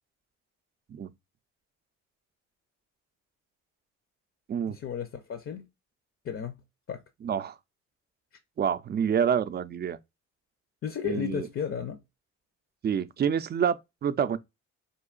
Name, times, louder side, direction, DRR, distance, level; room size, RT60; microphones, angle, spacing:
voice 1, 4.7-5.6 6.2-6.6 6.9-7.0 10.8-12.0, left 8 dB, 45° left, 0.6 m, -33 dB
voice 2, 7.2-7.6 8.6-10.0 11.0-11.5 12.8-14.4, right 8 dB, 35° right, 0.4 m, -27 dB
4.5 x 2.7 x 2.3 m
cardioid pair, 90°, 30 cm